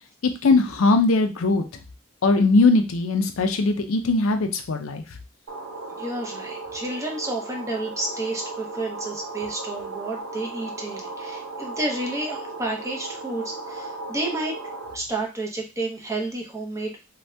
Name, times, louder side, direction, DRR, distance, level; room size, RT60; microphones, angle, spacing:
voice 1, 0.2-1.6 2.2-5.0, left 3 dB, 85° left, 7 dB, 0.5 m, -20 dB
sound 1, 5.5-14.9, right 3 dB, 75° right, 0.6 m, -36 dB
voice 2, 6.0-14.6 14.9-16.9, right 2 dB, 15° right, 0 dB, 0.6 m, -30 dB
2.7 x 2.2 x 3.2 m, 0.29 s
head